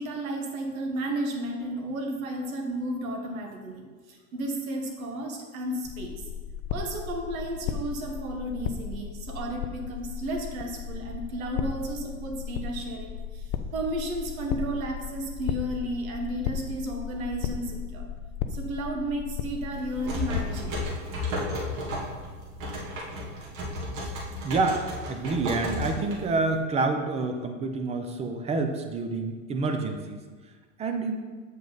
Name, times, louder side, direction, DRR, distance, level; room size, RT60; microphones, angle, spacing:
voice 1, 0.0-6.1 6.7-18.0 18.5-20.9, right 1 dB, 80° right, 2 dB, 1.6 m, -33 dB
sound 1, 5.8-20.9, left 8 dB, 35° left, 0.4 m, -35 dB
sound 2, 19.7-26.6, left 1 dB, 65° right, 2.3 m, -33 dB
voice 2, 24.4-24.8 25.1-30.2 30.8-31.2, right 3 dB, 15° right, 5 dB, 0.5 m, -28 dB
7.5 x 5.3 x 4.0 m, 1.4 s
hypercardioid pair, 130°, 41 cm